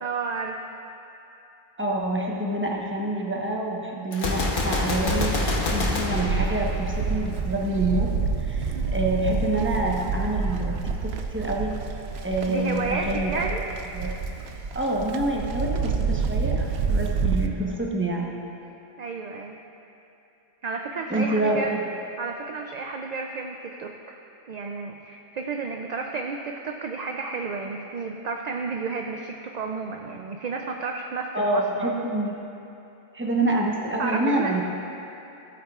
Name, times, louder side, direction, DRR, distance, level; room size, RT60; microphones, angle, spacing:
voice 1, 0.0-0.6 8.7-9.1 12.5-13.6 19.0-19.6 20.6-21.7 22.2-24.2 24.5-31.9 34.0-34.6, right 4 dB, 55° right, 2 dB, 0.5 m, -32 dB
voice 2, 1.8-11.7 12.2-13.4 13.9-14.1 14.7-18.4 21.1-21.8 31.3-32.3 33.1-34.6, right 2 dB, 10° right, -2 dB, 0.9 m, -27 dB
Gunshot gunfire, 4.1-7.2, left 2 dB, 55° left, 1.1 m, -27 dB
Livestock farm animals working animals, 5.0-17.5, right 5 dB, 85° right, 0.9 m, -28 dB
15.5 x 8.7 x 2.4 m, 2.9 s
omnidirectional pair, 1.1 m